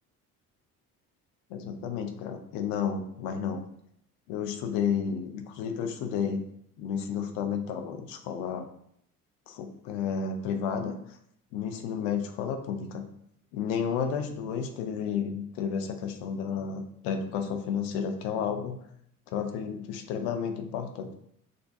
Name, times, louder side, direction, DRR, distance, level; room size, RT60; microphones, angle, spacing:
voice 1, 1.5-3.6 4.3-6.4 6.8-8.7 9.5-10.9 11.5-13.0 13.5-18.8 19.3-21.1, left 7 dB, 65° left, 6 dB, 0.7 m, -32 dB
6.5 x 2.2 x 2.7 m, 0.70 s
hypercardioid pair, 55°, 44 cm